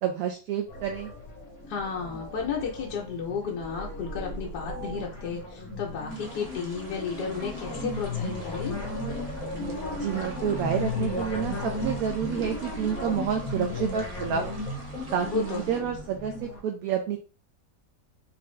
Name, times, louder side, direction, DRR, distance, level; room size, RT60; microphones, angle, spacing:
voice 1, 0.0-1.1 10.0-14.6 15.1-17.2, right 8 dB, 70° right, 4 dB, 0.9 m, -29 dB
sound 1, 0.7-16.6, left 1 dB, 60° left, 1.3 m, -35 dB
voice 2, 1.7-8.8 15.2-15.8, left 6 dB, 80° left, -1 dB, 1.3 m, -33 dB
sound 2, 6.1-15.8, right 2 dB, 40° right, 0.5 m, -49 dB
3.7 x 2.6 x 3.1 m, 0.35 s
omnidirectional pair, 1.8 m